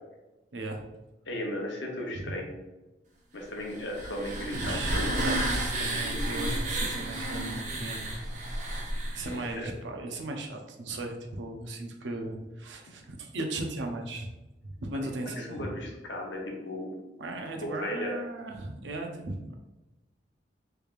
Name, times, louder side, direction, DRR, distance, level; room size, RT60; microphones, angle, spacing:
voice 1, 0.5-0.9 2.2-2.3 4.5-8.0 9.1-14.3 14.6-15.7 17.2-19.6, right 2 dB, 85° right, 3 dB, 0.6 m, -37 dB
voice 2, 1.3-2.6 3.3-5.2 9.3-9.7 15.4-16.9 17.6-18.1, left 1 dB, 85° left, 0 dB, 0.8 m, -36 dB
sound 1, 3.7-9.5, right 1 dB, 45° right, 0.7 m, -31 dB
3.3 x 3.2 x 2.5 m, 1.0 s
head